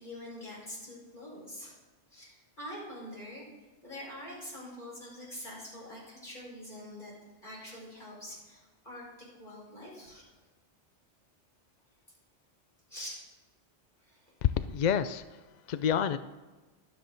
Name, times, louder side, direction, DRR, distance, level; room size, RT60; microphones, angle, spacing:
voice 1, 0.0-1.7 2.1-3.4 3.8-7.1 7.4-9.0 9.4-10.4 12.9-13.2 14.0-14.3, left 1 dB, 45° left, -4 dB, 5.5 m, -45 dB
voice 2, 14.4-15.4 15.7-16.2, left 8 dB, 60° left, 12 dB, 0.5 m, -28 dB
22.5 x 7.7 x 3.9 m, 1.2 s
omnidirectional pair, 1.2 m